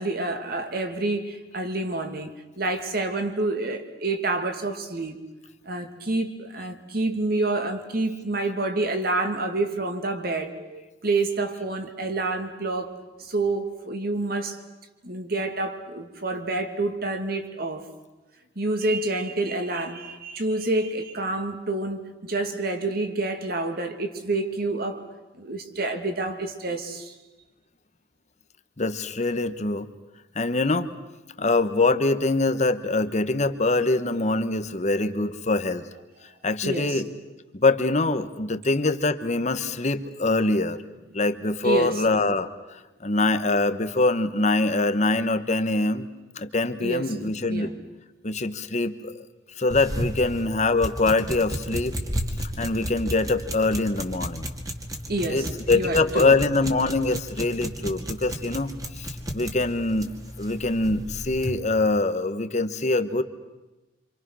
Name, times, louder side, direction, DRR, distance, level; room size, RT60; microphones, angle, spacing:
voice 1, 0.0-5.2 5.7-14.6 15.0-17.9 18.6-25.1 25.4-27.1 36.6-37.0 41.6-41.9 46.8-47.8 55.1-56.3, right 2 dB, 55° right, 2.4 m, -28 dB
voice 2, 28.8-29.9 30.3-30.9 31.4-35.9 36.4-37.1 37.5-40.8 41.1-46.1 46.3-47.7 48.2-49.2 49.6-51.9 52.6-54.5 55.3-63.2, left 2 dB, 40° left, 1.1 m, -24 dB
sound 1, 49.7-61.6, equal, 20° right, 2.2 m, -33 dB
27.0 x 27.0 x 6.3 m
head